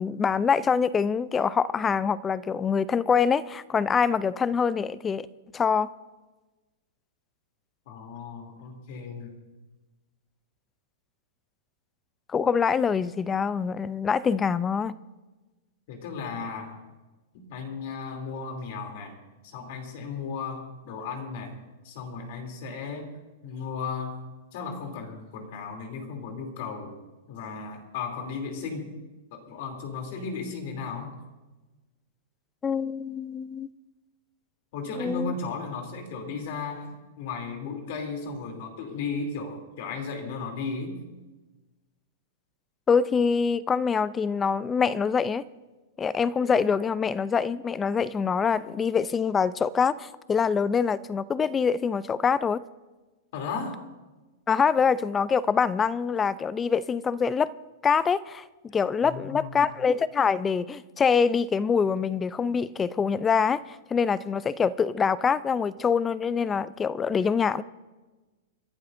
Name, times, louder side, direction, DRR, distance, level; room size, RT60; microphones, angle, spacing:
voice 1, 0.0-5.3 5.5-5.9 12.3-15.0 32.6-33.7 35.0-35.3 42.9-45.4 46.0-52.6 54.5-57.5 57.8-58.4 58.7-67.6, left 6 dB, 15° left, 0.4 m, -25 dB
voice 2, 7.9-9.3 15.9-16.8 17.3-19.2 19.4-26.9 27.3-29.0 29.3-31.2 34.7-41.0 53.3-53.8 59.0-59.7, left 4 dB, 55° left, 3.1 m, -35 dB
30.0 x 12.0 x 2.6 m
hypercardioid pair, 140°, 0 cm